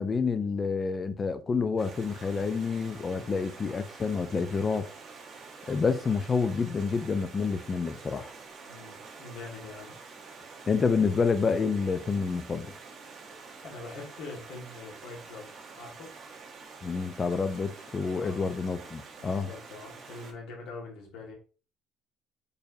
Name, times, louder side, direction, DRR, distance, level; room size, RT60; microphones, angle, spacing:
voice 1, 0.0-4.9 5.7-8.3 10.7-12.7 16.8-19.5, left 5 dB, 25° left, 0.4 m, -28 dB
Stream, 1.8-20.3, right 4 dB, 35° right, 1.2 m, -47 dB
voice 2, 3.1-3.5 8.7-10.0 13.6-16.1 18.1-18.5 19.2-21.3, left 3 dB, 70° left, 1.6 m, -44 dB
4.4 x 3.3 x 2.7 m
cardioid pair, 150°, 0 cm